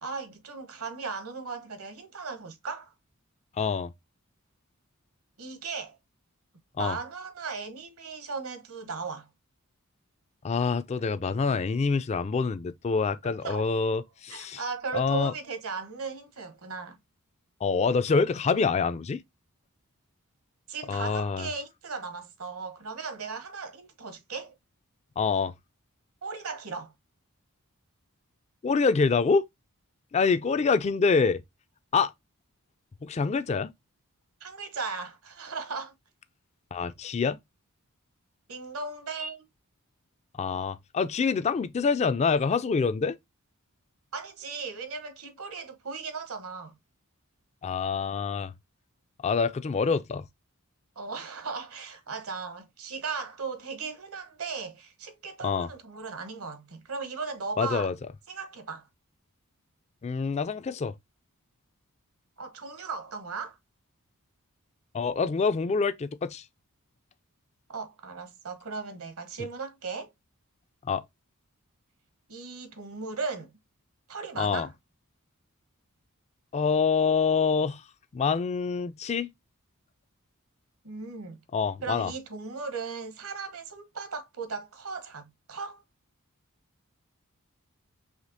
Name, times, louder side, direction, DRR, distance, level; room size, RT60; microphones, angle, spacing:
voice 1, 0.0-2.9 5.4-6.0 6.8-9.3 13.2-13.7 14.3-17.0 20.7-24.5 26.2-26.9 34.4-35.9 38.5-39.5 44.1-46.7 51.0-57.9 58.3-58.9 62.4-63.6 67.7-70.1 72.3-73.5 74.1-74.7 80.8-81.4 81.8-85.8, right 4 dB, 75° right, 1.0 m, -37 dB
voice 2, 3.6-3.9 6.8-7.0 10.4-14.6 14.9-15.3 17.6-19.2 20.9-21.5 25.2-25.5 28.6-29.5 30.1-31.4 31.9-32.1 33.0-33.7 36.7-37.4 40.4-43.2 47.6-48.5 49.2-50.2 55.4-55.7 57.6-57.9 60.0-60.9 64.9-66.4 70.9-71.0 74.4-74.7 76.5-77.8 78.1-79.3 81.5-82.1, left 5 dB, 30° left, 0.3 m, -26 dB
5.0 x 3.2 x 2.6 m
head